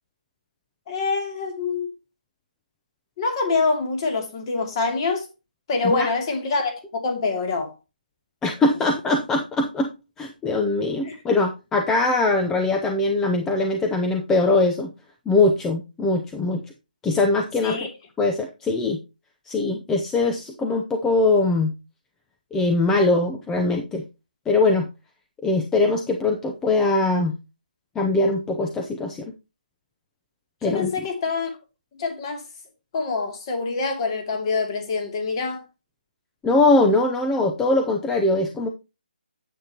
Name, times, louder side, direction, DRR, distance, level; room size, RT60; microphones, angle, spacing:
voice 1, 0.9-1.9 3.2-5.3 5.7-7.7 11.0-11.2 17.6-17.9 30.7-31.5 32.0-32.4 32.9-35.6, left 4 dB, 30° left, 2.6 m, -25 dB
voice 2, 8.4-9.9 10.2-14.9 15.3-16.6 17.0-17.8 18.2-19.0 19.5-21.7 22.5-24.0 24.5-24.9 25.4-27.3 28.0-29.3 30.6-30.9 36.4-38.7, left 2 dB, 10° left, 0.6 m, -21 dB
9.2 x 8.1 x 2.9 m
hypercardioid pair, 160°, 5 cm